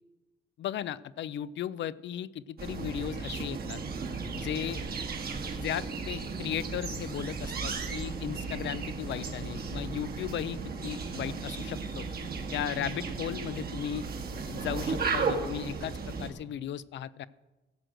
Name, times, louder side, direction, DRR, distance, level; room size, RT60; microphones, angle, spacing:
voice 1, 0.6-3.8 4.3-4.8 5.5-12.1 12.5-14.0 14.4-17.3, left 10 dB, 65° left, 17 dB, 0.5 m, -36 dB
sound 1, 2.6-16.3, right 4 dB, 50° right, 1.7 m, -35 dB
15.0 x 6.3 x 7.8 m, 1.1 s
cardioid pair, 90°, 20 cm